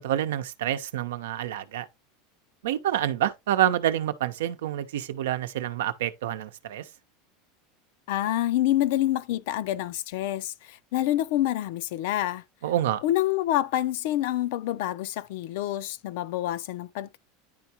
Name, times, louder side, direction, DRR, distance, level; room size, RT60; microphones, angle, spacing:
voice 1, 0.0-1.9 2.6-6.8 12.6-13.0, right 11 dB, 90° right, 0.7 m, -27 dB
voice 2, 8.1-12.4 13.0-17.2, left 14 dB, 70° left, 0.5 m, -27 dB
10.0 x 3.6 x 2.8 m
supercardioid pair, 135°, 0 cm